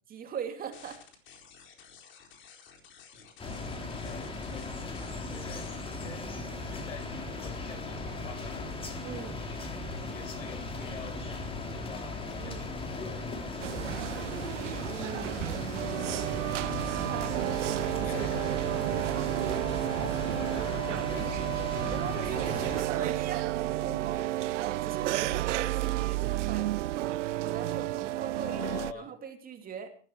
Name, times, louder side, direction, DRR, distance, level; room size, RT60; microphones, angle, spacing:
voice 1, 0.1-1.0 9.0-9.5 12.4-12.7 14.8-18.3 21.2-21.3 21.8-26.7 27.4-28.6 28.9-29.9, right 7 dB, 25° right, 6 dB, 2.8 m, -41 dB
sound 1, 0.7-6.0, left 7 dB, 30° left, 4.3 m, -53 dB
sound 2, 3.4-22.8, left 3 dB, 15° left, 3.3 m, -37 dB
voice 2, 4.0-6.3 6.6-8.7 9.3-13.0 17.5-18.5 20.0-21.3 28.4-29.1, left 6 dB, 85° left, 7 dB, 7.0 m, -46 dB
sound 3, 13.6-28.9, right 15 dB, 70° right, 0.8 m, -31 dB
19.0 x 12.5 x 4.5 m, 0.42 s
hypercardioid pair, 130°, 38 cm